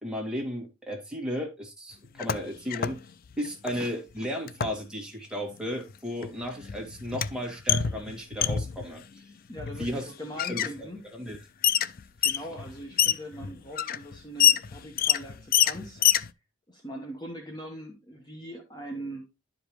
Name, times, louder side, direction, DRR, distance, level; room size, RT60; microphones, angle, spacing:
voice 1, 0.0-3.0 3.4-9.0 9.8-10.1 10.5-11.4, equal, 5° right, 2.0 m, -34 dB
sound 1, 2.0-3.0 3.3-3.8 4.5-4.8 5.9-6.0 6.2-8.9 9.6-10.0 10.4-10.7 11.3-11.4 11.6-16.3, left 10 dB, 45° left, 0.4 m, -26 dB
voice 2, 9.5-11.0 12.2-16.0 16.7-19.3, equal, 20° left, 1.1 m, -41 dB
11.0 x 5.1 x 3.0 m
head